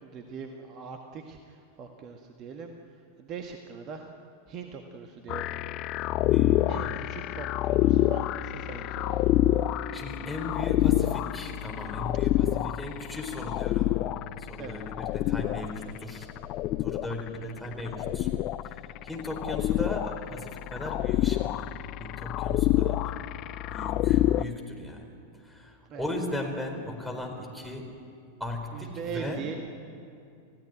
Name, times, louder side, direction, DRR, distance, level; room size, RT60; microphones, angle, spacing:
voice 1, 0.0-2.7 3.2-4.1 4.5-5.5 6.7-9.3 14.6-15.1 17.3-17.5 25.9-26.1 28.7-29.6, right 5 dB, 35° right, 4 dB, 1.7 m, -41 dB
sound 1, 5.3-24.4, left 15 dB, 40° left, 0.5 m, -27 dB
voice 2, 6.3-6.9 9.9-14.0 14.4-16.3 16.8-18.3 18.6-21.6 22.0-23.2 23.7-25.1 25.4-27.9 28.4-29.4, left 1 dB, ahead, 3 dB, 4.5 m, -37 dB
28.5 x 16.5 x 9.4 m, 2.5 s
figure-of-eight pair, 90°, 0 cm